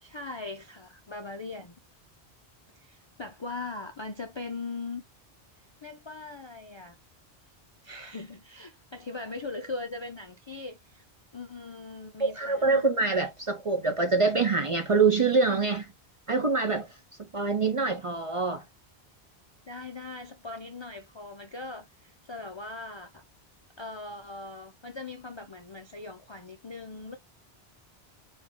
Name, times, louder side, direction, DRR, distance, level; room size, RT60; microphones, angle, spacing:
voice 1, 0.0-1.8 2.7-5.0 5.8-7.0 7.8-11.0 11.3-12.8 19.7-23.2 23.8-27.2, left 3 dB, 45° left, 0.4 m, -40 dB
voice 2, 12.2-15.9 16.3-16.9 17.3-18.6, right 4 dB, 40° right, 0.5 m, -25 dB
3.7 x 2.7 x 3.4 m
omnidirectional pair, 1.1 m